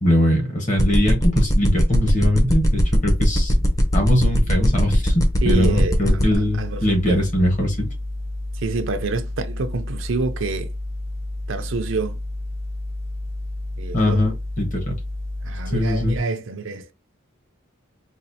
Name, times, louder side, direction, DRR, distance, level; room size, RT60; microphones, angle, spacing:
voice 1, 0.0-3.5 3.9-7.9 13.9-14.9 15.7-16.2, left 1 dB, 35° left, 1.2 m, -21 dB
sound 1, 0.8-6.4, equal, 15° left, 0.6 m, -20 dB
sound 2, 2.5-16.2, left 1 dB, 60° left, 0.9 m, -31 dB
voice 2, 5.4-7.2 8.5-10.7 11.5-12.2 13.8-14.3 15.4-16.9, right 3 dB, 65° right, 0.5 m, -28 dB
4.1 x 2.4 x 2.7 m
head